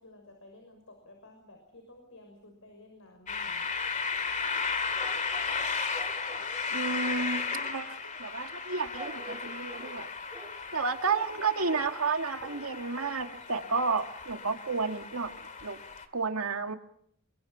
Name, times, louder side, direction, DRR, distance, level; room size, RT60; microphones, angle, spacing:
voice 1, 0.0-3.7, left 2 dB, 70° left, 3 dB, 6.2 m, -53 dB
sound 1, 3.3-16.1, left 5 dB, 35° left, 2.4 m, -35 dB
sound 2, 5.0-5.6 5.9-6.7 8.9-10.0 10.3-10.6 11.1-11.4 11.7-12.0 12.4-12.7 13.1-13.2 13.4-13.5, right 2 dB, 20° right, 4.4 m, -47 dB
voice 2, 6.7-10.1 10.7-15.8 16.1-16.7, right 4 dB, 80° right, 6 dB, 2.0 m, -31 dB
29.5 x 23.5 x 5.7 m, 0.69 s
head